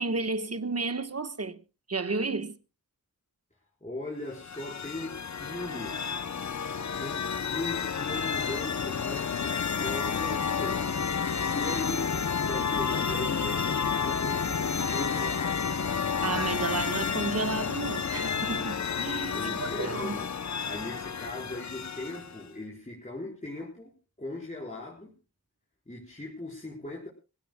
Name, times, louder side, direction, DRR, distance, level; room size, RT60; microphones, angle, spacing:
voice 1, 0.0-1.6 1.9-2.6 16.2-20.2, right 3 dB, 45° right, 1.3 m, -32 dB
voice 2, 3.8-6.0 7.0-15.8 19.3-20.3 20.6-25.1 25.9-27.1, left 2 dB, 20° left, 4.5 m, -39 dB
sound 1, 4.3-22.5, left 6 dB, 50° left, 0.7 m, -30 dB
26.0 x 16.5 x 2.2 m
wide cardioid pair, 90°, 35 cm